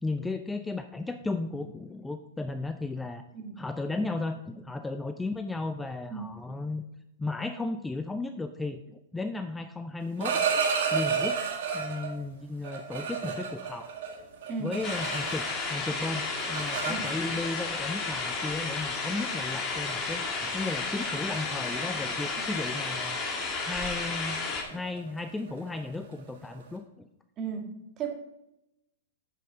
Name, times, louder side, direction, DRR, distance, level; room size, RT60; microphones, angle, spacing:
voice 1, 0.0-3.2 3.6-6.8 7.2-10.5 10.9-11.4 11.7-13.9 14.6-23.2 23.6-24.4 24.7-27.1, left 3 dB, 10° left, 8 dB, 0.5 m, -35 dB
sound 1, 10.0-12.1 12.6-15.7 16.0-17.5 18.4-18.5 18.9-19.2 19.6-19.9 20.2-20.5 20.8-21.0 21.3-26.7, right 6 dB, 60° right, 2.0 m, -32 dB
sound 2, 14.8-24.6, left 4 dB, 25° left, 2.0 m, -32 dB
voice 2, 27.4-28.1, right 6 dB, 30° right, 2 dB, 2.0 m, -35 dB
9.0 x 7.6 x 3.7 m, 0.87 s
hypercardioid pair, 110°, 0 cm